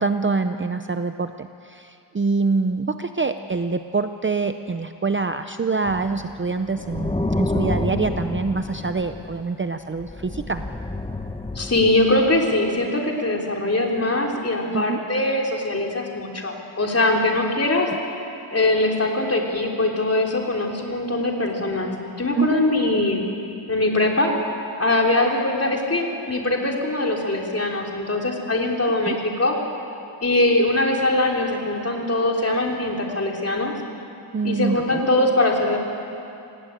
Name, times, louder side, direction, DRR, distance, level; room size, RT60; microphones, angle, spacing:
voice 1, 0.0-10.6 14.7-15.0 22.3-22.6 29.0-29.2 34.3-35.1, right 4 dB, 25° right, 8 dB, 0.6 m, -25 dB
sound 1, 5.9-9.6 10.0-12.6, left 2 dB, 10° left, 1.0 m, -29 dB
voice 2, 11.5-17.9 18.5-21.9 22.2-23.3 23.7-24.3 24.8-29.6 30.2-33.7 34.4-35.8, left 2 dB, 30° left, 0 dB, 3.6 m, -22 dB
27.5 x 18.0 x 9.1 m, 2.7 s
wide cardioid pair, 125°, 48 cm